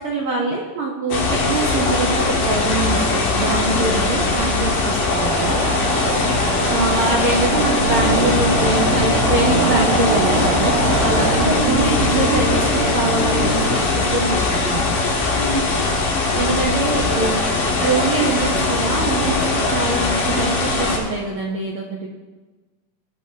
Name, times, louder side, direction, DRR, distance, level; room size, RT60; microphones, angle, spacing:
voice 1, 0.0-5.6 6.7-14.8 16.3-17.3 17.8-22.1, right 3 dB, 70° right, -2 dB, 1.3 m, -24 dB
sound 1, 1.1-21.0, left 3 dB, 80° left, 3.3 m, -20 dB
sound 2, 5.1-11.4, right 2 dB, 90° right, 3.5 m, -24 dB
voice 2, 6.1-6.4 11.4-11.9 15.3-15.7, equal, 50° left, -4 dB, 3.2 m, -29 dB
sound 3, 7.8-13.8, right 2 dB, 50° right, 2.1 m, -24 dB
17.0 x 9.0 x 2.8 m, 1.3 s
omnidirectional pair, 3.9 m